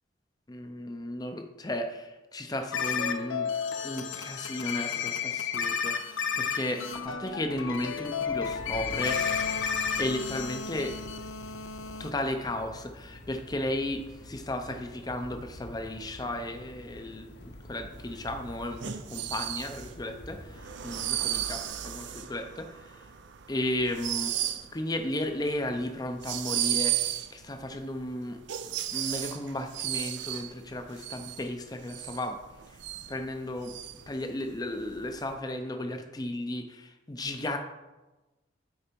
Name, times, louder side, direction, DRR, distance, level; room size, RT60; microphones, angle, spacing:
voice 1, 0.5-3.5 3.8-9.2 10.0-11.0 12.0-20.4 20.6-22.7 23.5-24.4 24.7-28.4 28.9-32.4 33.1-33.8 34.1-37.6, left 1 dB, 20° left, 6 dB, 0.6 m, -34 dB
sound 1, 2.7-12.1, left 6 dB, 90° left, 0.7 m, -32 dB
sound 2, 8.3-20.7, left 1 dB, 60° left, 1.1 m, -47 dB
sound 3, 18.1-35.3, right 12 dB, 70° right, 0.5 m, -34 dB
8.8 x 4.1 x 5.2 m, 1.1 s
head